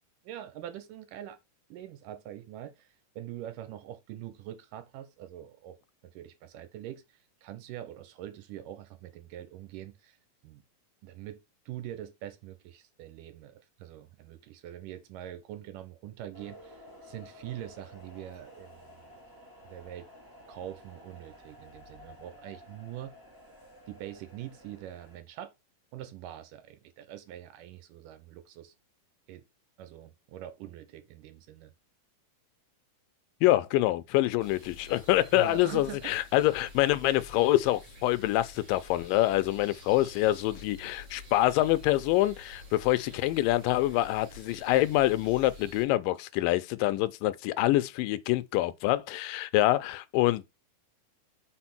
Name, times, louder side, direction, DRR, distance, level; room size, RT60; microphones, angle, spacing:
voice 1, 0.2-1.4 1.7-2.9 3.2-5.8 6.0-7.0 7.4-10.2 10.4-10.6 11.0-19.1 19.6-20.1 20.5-23.1 23.9-25.5 25.9-28.7 29.3-29.4 29.8-31.7 35.3-36.1, right 12 dB, 80° right, 2.5 m, -43 dB
sound 1, 16.3-25.2, left 1 dB, 10° right, 1.5 m, -53 dB
voice 2, 33.4-50.5, left 16 dB, 90° left, 2.3 m, -26 dB
sound 2, 34.4-45.8, left 1 dB, 35° right, 2.4 m, -49 dB
5.3 x 4.2 x 5.9 m
omnidirectional pair, 3.8 m